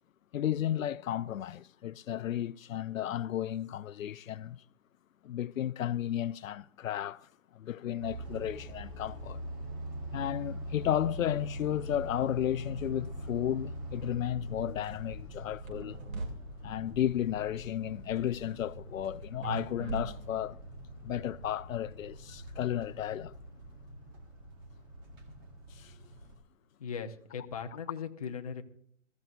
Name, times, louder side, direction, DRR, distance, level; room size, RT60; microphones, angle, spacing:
voice 1, 0.3-4.6 5.2-9.4 10.1-16.0 16.6-20.6 21.0-23.4 25.7-26.0, left 11 dB, 85° left, 0.5 m, -33 dB
sound 1, 8.0-26.3, right 1 dB, 15° right, 1.4 m, -43 dB
sound 2, 15.7-16.3 19.4-20.6, right 3 dB, 85° right, 6.6 m, -38 dB
voice 2, 26.8-28.6, left 6 dB, 30° left, 0.9 m, -39 dB
21.5 x 14.0 x 2.6 m
hypercardioid pair, 170°, 39 cm